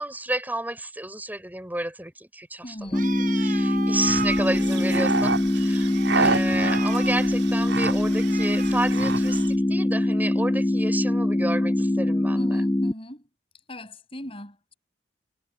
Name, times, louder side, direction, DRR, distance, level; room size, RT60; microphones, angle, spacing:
voice 1, 0.0-2.7 3.4-5.9 6.1-12.6, right 1 dB, 10° right, 6.5 m, -31 dB
voice 2, 2.6-3.2 12.3-13.3 13.7-14.7, equal, 30° left, 7.5 m, -39 dB
sound 1, 2.9-12.9, left 1 dB, 15° left, 0.4 m, -23 dB
Animal, 2.9-9.6, right 5 dB, 45° right, 7.1 m, -37 dB
sound 2, 3.9-9.5, right 3 dB, 80° right, 6.7 m, -30 dB
head